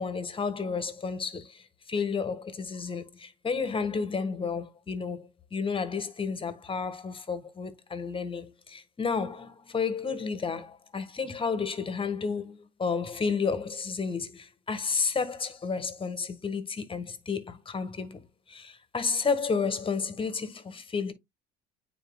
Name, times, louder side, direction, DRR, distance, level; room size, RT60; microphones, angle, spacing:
voice 1, 0.0-18.2 18.5-21.1, left 5 dB, 25° left, 1.6 m, -31 dB
9.1 x 4.5 x 2.4 m
supercardioid pair, 85°, 20 cm